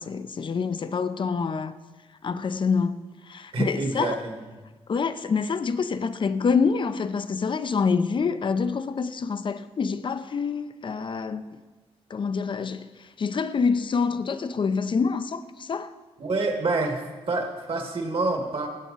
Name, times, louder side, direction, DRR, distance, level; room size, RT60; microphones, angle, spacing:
voice 1, 0.0-1.7 2.2-3.0 3.3-4.2 4.9-11.6 12.1-12.9 13.2-15.9, left 5 dB, 45° left, 0.6 m, -26 dB
voice 2, 3.5-4.3 16.2-17.0 17.3-18.7, right 3 dB, 55° right, 1.9 m, -27 dB
16.5 x 8.2 x 4.0 m
cardioid pair, 90°, 11 cm